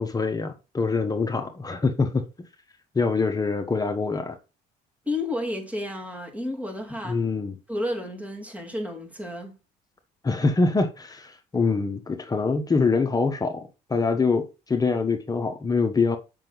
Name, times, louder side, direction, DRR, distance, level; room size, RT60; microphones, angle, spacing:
voice 1, 0.0-2.2 2.9-4.4 7.0-7.6 10.2-16.2, left 4 dB, 20° left, 1.1 m, -24 dB
voice 2, 5.1-7.2 7.7-9.6, left 1 dB, 10° right, 2.3 m, -31 dB
7.5 x 5.8 x 3.9 m
cardioid pair, 110°, 17 cm